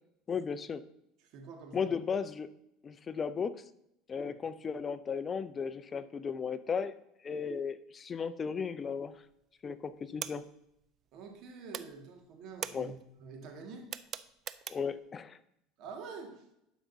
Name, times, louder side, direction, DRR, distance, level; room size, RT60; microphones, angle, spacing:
voice 1, 0.3-0.8 1.7-2.5 2.8-3.6 4.1-6.9 7.2-9.2 9.6-10.5 12.7-12.9 14.7-15.4, left 6 dB, 30° left, 15 dB, 0.4 m, -35 dB
voice 2, 1.3-1.9 4.2-4.3 11.1-13.9 15.8-16.4, right 4 dB, 60° right, 2 dB, 1.7 m, -47 dB
sound 1, 8.9-9.4 9.7-11.4 11.7-15.1, right 9 dB, 40° right, 0.3 m, -43 dB
12.0 x 5.0 x 2.7 m, 0.81 s
supercardioid pair, 110°, 0 cm